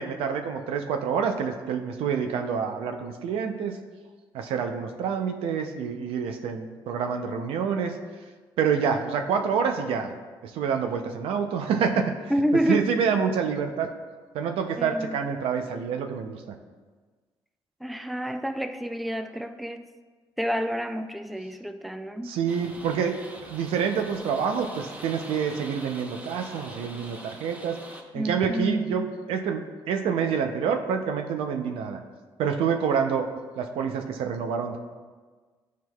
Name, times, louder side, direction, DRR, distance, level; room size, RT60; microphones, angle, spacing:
voice 1, 0.0-3.8 4.3-7.9 8.6-10.1 10.4-12.1 12.7-13.9 14.3-16.6 22.2-27.8 28.1-32.0 32.4-33.3 33.6-34.8, right 6 dB, 85° right, 5 dB, 0.6 m, -27 dB
voice 2, 12.3-12.9 14.8-15.2 17.8-19.9 20.4-22.3 28.1-29.1, equal, ahead, 7 dB, 0.4 m, -28 dB
sound 1, 22.5-28.0, right 1 dB, 15° right, 0.9 m, -43 dB
11.0 x 4.6 x 2.3 m, 1.4 s
cardioid pair, 85°, 9 cm